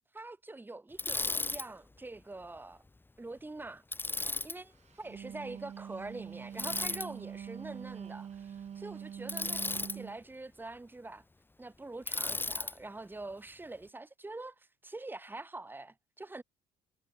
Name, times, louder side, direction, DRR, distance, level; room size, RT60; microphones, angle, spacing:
voice 1, 0.1-2.8 3.2-3.8 4.4-9.6 9.9-11.2 11.6-16.4, right 2 dB, 10° right, 1.7 m, -45 dB
Bicycle, 1.0-1.7 3.9-4.6 6.6-7.1 9.3-10.0 12.1-12.7, left 2 dB, 10° left, 1.4 m, -34 dB
Wind instrument woodwind instrument, 4.9-10.2, right 8 dB, 40° right, 1.0 m, -44 dB
cardioid pair, 110°, 17 cm